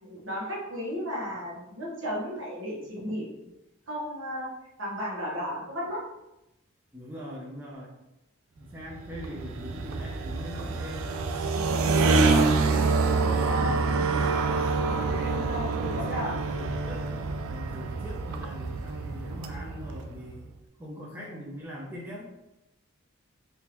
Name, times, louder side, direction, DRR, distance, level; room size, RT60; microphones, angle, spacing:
voice 1, 0.0-3.5 3.9-4.5 4.8-6.0 11.7-12.5 13.2-13.9 14.8-16.3, equal, 70° right, -5 dB, 1.1 m, -34 dB
voice 2, 6.9-8.0 8.6-11.4 13.3-13.9 14.7-20.5 20.8-22.3, equal, 10° right, -5 dB, 0.5 m, -41 dB
sound 1, 8.8-20.4, right 4 dB, 85° right, 0.4 m, -27 dB
3.6 x 2.6 x 2.9 m, 0.91 s
head